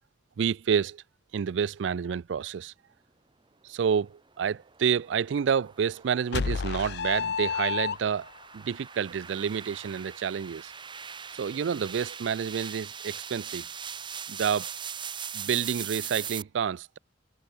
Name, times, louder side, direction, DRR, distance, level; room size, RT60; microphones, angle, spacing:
voice 1, 0.4-1.0 1.3-2.7 3.6-10.7 11.3-13.7 14.3-14.7 15.3-17.0, right 7 dB, 75° right, 0.4 m, -29 dB
sound 1, 4.4-16.4, right 7 dB, 25° right, 1.0 m, -41 dB
sound 2, 6.3-8.4, left 6 dB, 60° left, 0.5 m, -30 dB
head